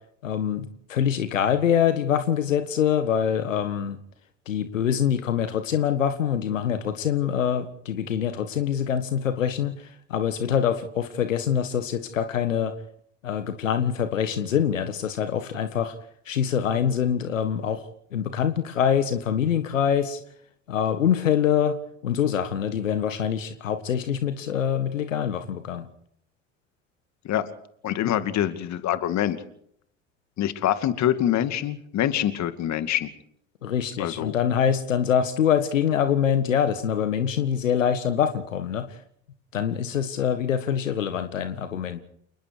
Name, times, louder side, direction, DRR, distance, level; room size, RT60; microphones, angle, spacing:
voice 1, 0.2-4.0 4.5-12.7 13.2-15.9 16.2-20.2 20.7-21.8 22.0-25.9 33.6-39.0 39.5-42.0, left 8 dB, 80° left, 10 dB, 1.7 m, -25 dB
voice 2, 27.8-29.4 30.4-33.1 34.0-34.4, left 11 dB, 45° left, 11 dB, 2.4 m, -25 dB
29.0 x 20.5 x 4.8 m, 0.69 s
figure-of-eight pair, 70°, 38 cm